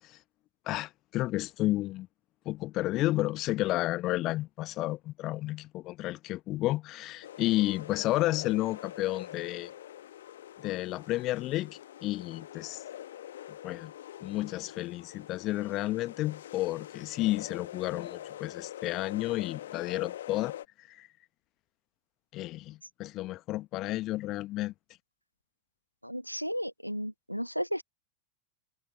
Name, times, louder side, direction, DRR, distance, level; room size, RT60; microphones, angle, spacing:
voice 1, 0.7-2.1 2.4-9.7 10.6-12.8 13.6-13.9 14.2-21.1 22.3-24.7, left 17 dB, 35° left, 1.2 m, -32 dB
sound 1, 7.2-20.7, left 12 dB, 60° left, 1.6 m, -44 dB
voice 2, 26.0-27.8, equal, 90° right, 1.1 m, -34 dB
figure-of-eight pair, 90°, 0 cm